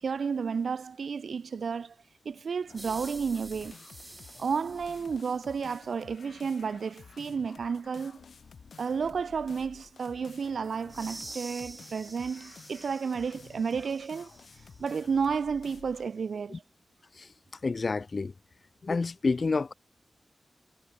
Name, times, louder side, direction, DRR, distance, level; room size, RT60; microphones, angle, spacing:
voice 1, 0.0-1.9 2.2-3.8 4.4-8.2 8.8-14.3 14.8-16.6, right 6 dB, 75° right, 0.5 m, -32 dB
sound 1, 2.7-16.1, left 5 dB, 70° left, 5.9 m, -52 dB
sound 2, 2.8-5.8 10.9-14.9, right 2 dB, 25° right, 4.7 m, -48 dB
voice 2, 17.6-18.3 18.8-19.7, left 4 dB, 45° left, 0.3 m, -29 dB
wide cardioid pair, 125°, 0 cm